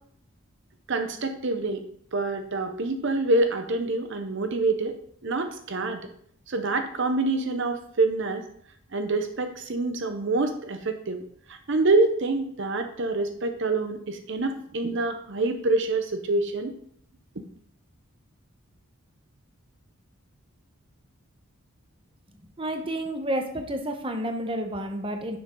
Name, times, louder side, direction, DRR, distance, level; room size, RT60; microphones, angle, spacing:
voice 1, 0.9-1.8 2.1-6.0 6.5-8.4 8.9-11.2 11.5-16.7, right 2 dB, 55° right, 6 dB, 0.7 m, -26 dB
voice 2, 22.6-25.4, right 1 dB, 25° right, 4 dB, 0.9 m, -30 dB
10.0 x 6.6 x 3.7 m, 0.65 s
head